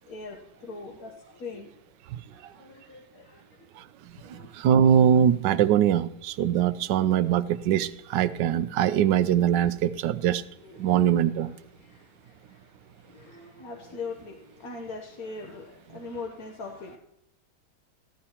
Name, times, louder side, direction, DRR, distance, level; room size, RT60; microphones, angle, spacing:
voice 1, 0.1-1.7 2.6-3.4 4.3-4.5 10.6-11.1 11.4-11.5 13.1-17.0, left 4 dB, 55° left, 1 dB, 1.3 m, -40 dB
voice 2, 4.3-10.4 10.8-11.5, right 9 dB, 75° right, 13 dB, 1.1 m, -22 dB
14.5 x 11.5 x 2.9 m, 0.85 s
omnidirectional pair, 2.1 m